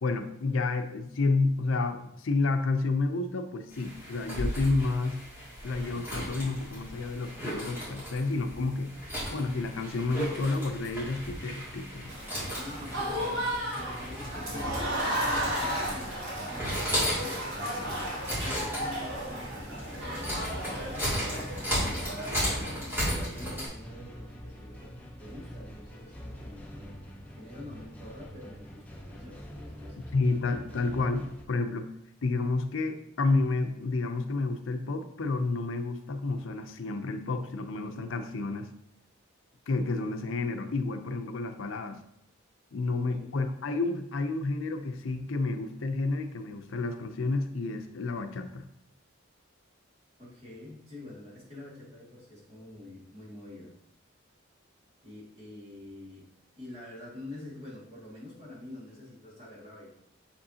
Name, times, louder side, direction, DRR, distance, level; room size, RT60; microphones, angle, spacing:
voice 1, 0.0-5.2 5.6-8.9 9.3-12.1 30.1-31.9 32.2-38.7 39.7-42.0 42.7-48.6, left 3 dB, 80° left, 7 dB, 0.5 m, -30 dB
sound 1, 3.7-23.7, equal, 10° right, 2.4 m, -35 dB
Applause / Crowd, 12.1-23.0, equal, 80° right, 2.5 m, -34 dB
voice 2, 12.5-18.0 18.4-22.7 23.0-24.9 25.2-30.0 42.9-43.4 50.2-53.7 55.0-56.2 56.6-59.9, left 2 dB, 30° right, -6 dB, 2.0 m, -46 dB
sound 2, 12.7-31.4, equal, 5° left, 0.6 m, -45 dB
6.8 x 5.2 x 2.8 m, 0.76 s
head